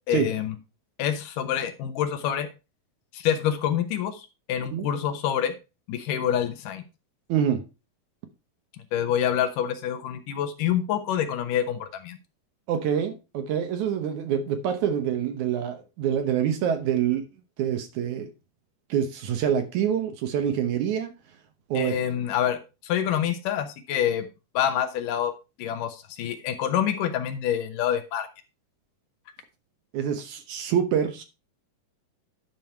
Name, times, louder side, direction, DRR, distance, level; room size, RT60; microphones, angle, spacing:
voice 1, 0.1-0.5 1.0-2.5 3.1-5.6 5.9-6.8 8.9-12.2 21.7-24.3 24.5-25.3 25.6-28.3, left 9 dB, 75° left, 2.5 m, -27 dB
voice 2, 7.3-7.6 12.7-17.3 17.6-18.3 18.9-21.1 21.7-22.0 29.9-31.2, right 8 dB, 65° right, 2.2 m, -26 dB
11.0 x 5.5 x 4.4 m
omnidirectional pair, 4.0 m